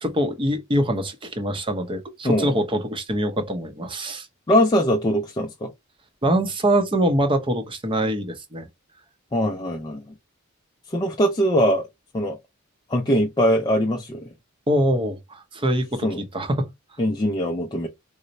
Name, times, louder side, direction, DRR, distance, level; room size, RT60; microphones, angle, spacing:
voice 1, 0.0-4.3 6.2-8.7 14.7-16.7, right 1 dB, 25° right, 0.6 m, -24 dB
voice 2, 4.5-5.7 9.3-10.0 10.9-11.9 12.1-12.4 12.9-14.3 16.0-16.2 17.0-17.9, equal, 20° left, 0.4 m, -21 dB
4.0 x 2.0 x 2.6 m
head